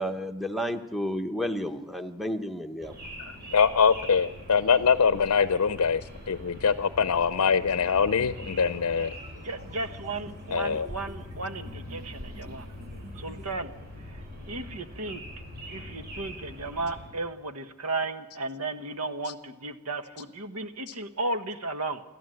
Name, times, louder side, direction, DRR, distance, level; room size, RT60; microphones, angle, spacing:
voice 1, 0.0-2.9, equal, ahead, 4 dB, 0.9 m, -31 dB
sound 1, 2.8-17.1, left 1 dB, 45° right, 6.6 m, -43 dB
voice 2, 3.5-9.1 10.5-10.9 20.9-21.0, left 6 dB, 80° left, 13 dB, 0.6 m, -23 dB
sound 2, 8.0-13.5, right 1 dB, 30° right, 1.7 m, -50 dB
voice 3, 9.4-12.7 13.2-13.7 14.0-15.2 15.6-22.0, right 2 dB, 80° right, 8 dB, 1.3 m, -34 dB
28.0 x 12.5 x 7.8 m, 1.1 s
head